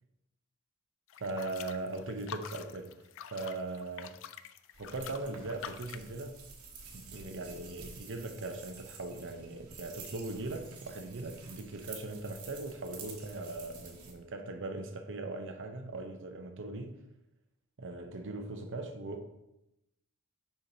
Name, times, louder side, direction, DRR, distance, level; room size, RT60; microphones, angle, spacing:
sound 1, 1.1-6.1, left 9 dB, 60° left, 0.3 m, -46 dB
voice 1, 1.2-2.9 3.3-4.1 4.8-6.4 6.9-17.0 17.8-19.3, right 2 dB, 60° right, 0.7 m, -39 dB
sound 2, 4.7-14.1, right 5 dB, 80° right, 1.2 m, -50 dB
6.9 x 5.8 x 2.7 m
head